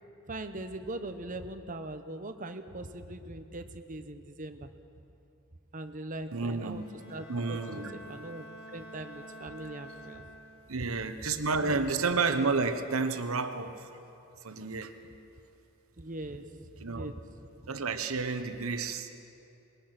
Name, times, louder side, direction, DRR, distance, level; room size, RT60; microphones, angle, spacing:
voice 1, 0.3-4.7 5.7-6.8 7.1-8.4 8.7-10.2 11.6-11.9 16.0-16.4 16.8-17.1, right 2 dB, 35° right, 8 dB, 1.0 m, -41 dB
voice 2, 6.3-6.9 7.3-7.9 10.7-13.9 14.4-14.9 16.8-17.1 17.7-19.1, right 4 dB, 70° right, 8 dB, 1.2 m, -31 dB
Bowed string instrument, 6.7-10.8, equal, 40° left, 3.8 m, -48 dB
21.5 x 21.0 x 6.1 m, 2.8 s
head